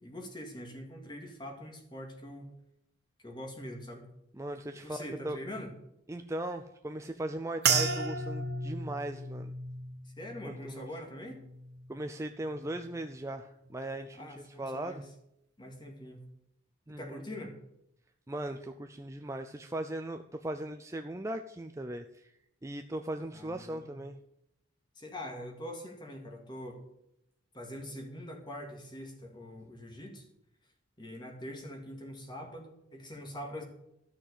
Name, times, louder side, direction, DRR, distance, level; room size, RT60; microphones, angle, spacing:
voice 1, 0.0-2.5 3.2-4.1 4.8-5.7 10.0-11.4 14.1-15.0 15.6-16.3 17.0-17.5 23.3-24.0 25.0-26.8 27.5-30.3 31.0-33.6, equal, 20° left, 3 dB, 2.2 m, -43 dB
voice 2, 4.4-5.4 6.1-9.5 10.4-10.8 11.9-15.0 16.9-17.2 18.3-22.3 22.6-24.2, right 1 dB, 15° right, 6 dB, 0.5 m, -38 dB
sound 1, 7.6-12.2 12.5-13.1 13.7-14.0, right 5 dB, 55° right, 1.5 m, -34 dB
13.5 x 6.3 x 8.1 m, 0.80 s
head